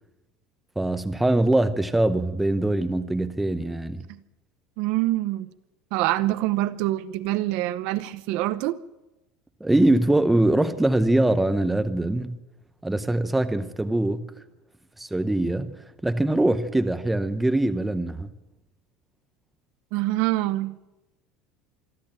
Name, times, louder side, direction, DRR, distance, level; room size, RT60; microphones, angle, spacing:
voice 1, 0.8-4.0 9.6-12.4 12.8-14.3 15.0-15.7 16.0-18.3, right 1 dB, 5° right, 0.8 m, -23 dB
voice 2, 4.8-5.5 5.9-8.8 19.9-20.8, right 16 dB, 55° right, 0.8 m, -25 dB
26.0 x 11.5 x 8.9 m
cardioid pair, 170°, 2 cm